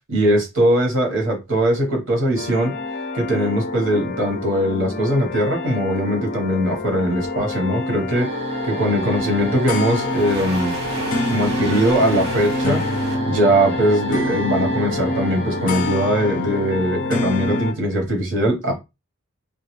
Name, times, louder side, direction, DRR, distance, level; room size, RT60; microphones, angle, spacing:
voice 1, 0.1-2.7 3.1-8.3 8.6-10.8 11.3-12.8 13.3-18.7, equal, 60° right, 1.0 m, -20 dB
sound 1, 2.3-17.7, left 2 dB, 40° left, 0.4 m, -26 dB
sound 2, 6.2-13.2, right 2 dB, 85° right, 1.2 m, -35 dB
sound 3, 8.1-17.1, right 3 dB, 30° right, 0.6 m, -33 dB
2.3 x 2.3 x 3.0 m
head